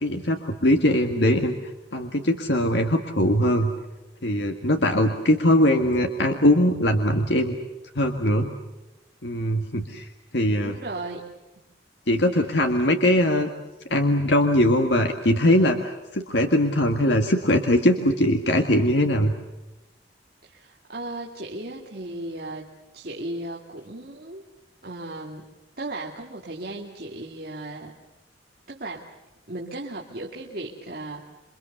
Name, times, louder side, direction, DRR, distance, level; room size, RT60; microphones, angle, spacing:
voice 1, 0.0-1.5 1.9-3.7 4.2-7.5 8.0-8.5 9.2-10.1 10.3-10.8 12.1-13.5 13.9-15.8 16.1-19.3, left 1 dB, 70° left, 4 dB, 1.8 m, -21 dB
voice 2, 10.6-11.3 20.4-24.4 24.8-25.5 25.8-27.9 28.7-29.1 29.5-31.3, right 2 dB, 55° right, -1 dB, 2.4 m, -36 dB
28.0 x 24.5 x 6.9 m, 1.0 s
head